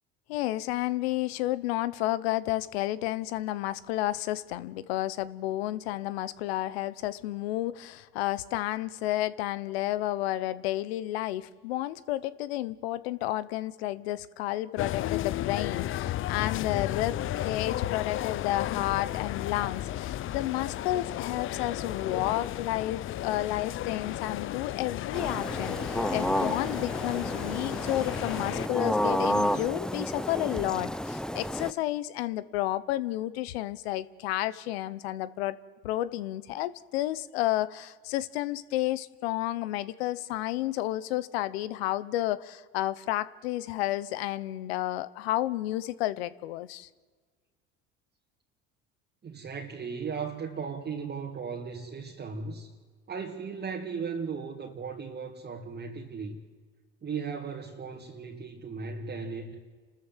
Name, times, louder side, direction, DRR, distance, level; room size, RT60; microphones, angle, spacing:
voice 1, 0.3-35.6 35.8-46.9, left 15 dB, 90° left, 0.9 m, -31 dB
sound 1, 14.8-28.7, left 13 dB, 45° left, 0.6 m, -34 dB
sound 2, 25.1-31.7, left 1 dB, ahead, 0.6 m, -31 dB
voice 2, 49.2-52.7 53.1-56.4 57.0-59.6, right 5 dB, 35° right, 2.3 m, -36 dB
29.0 x 13.5 x 7.4 m
supercardioid pair, 90°, 30 cm